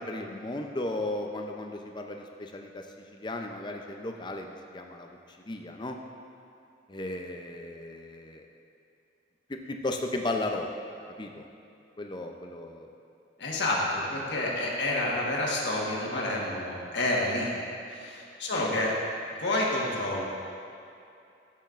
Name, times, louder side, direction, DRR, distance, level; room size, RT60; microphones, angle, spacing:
voice 1, 0.0-2.9 3.1-5.2 5.5-6.0 6.9-8.5 9.5-10.7 11.2-11.4 12.0-12.9 18.5-19.0, left 2 dB, 25° left, 3 dB, 0.5 m, -35 dB
voice 2, 13.4-17.5 17.9-18.9 19.4-20.2, left 1 dB, 70° left, -3 dB, 1.5 m, -29 dB
13.0 x 7.5 x 2.5 m, 2.7 s
head